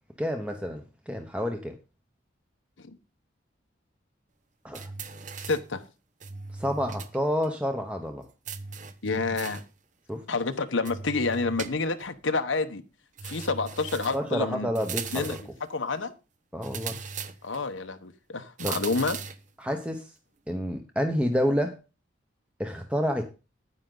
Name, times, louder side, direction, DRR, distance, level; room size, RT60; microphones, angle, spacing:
voice 1, 0.2-1.7 4.6-4.9 6.5-8.2 10.1-10.2 14.1-15.4 16.5-17.0 18.6-18.8 19.6-20.1 20.5-21.8 22.6-23.2, equal, 5° right, 0.9 m, -29 dB
sound 1, 4.7-5.7 6.2-7.2 7.4-7.5 8.5-9.7 10.9-12.1 13.2-14.3 14.8-15.6 16.6-17.7 18.6-19.5, right 5 dB, 40° right, 0.8 m, -38 dB
voice 2, 5.4-5.8 9.0-9.6 10.3-12.8 13.2-14.7 15.1-15.4 15.7-16.1 17.4-19.2, left 3 dB, 85° left, 1.0 m, -29 dB
9.6 x 9.2 x 3.9 m
head